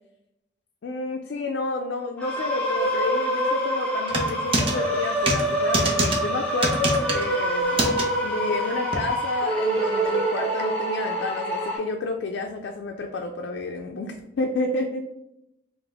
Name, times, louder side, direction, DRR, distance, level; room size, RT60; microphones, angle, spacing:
voice 1, 0.8-7.9 8.2-15.0, left 3 dB, 90° left, 3 dB, 0.4 m, -30 dB
sound 1, 2.2-11.8, right 1 dB, 5° left, 0.9 m, -26 dB
sound 2, 4.1-4.7 5.3-5.4 5.7-6.2 6.6-7.2 7.8-8.0 8.9-9.0, right 2 dB, 30° right, 0.6 m, -23 dB
Guitar, 9.4-12.2, left 2 dB, 35° left, 0.6 m, -36 dB
4.9 x 2.1 x 3.5 m, 0.85 s
head